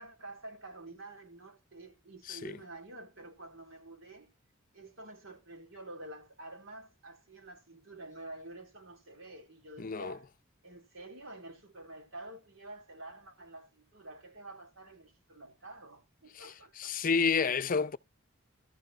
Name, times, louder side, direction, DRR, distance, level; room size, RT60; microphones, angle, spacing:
voice 1, 0.0-4.3 4.7-10.3 10.6-17.0, right 2 dB, 75° right, 3.8 m, -49 dB
voice 2, 2.3-2.6 9.8-10.2 16.3-18.0, left 5 dB, 45° left, 0.6 m, -30 dB
13.0 x 5.1 x 5.5 m
head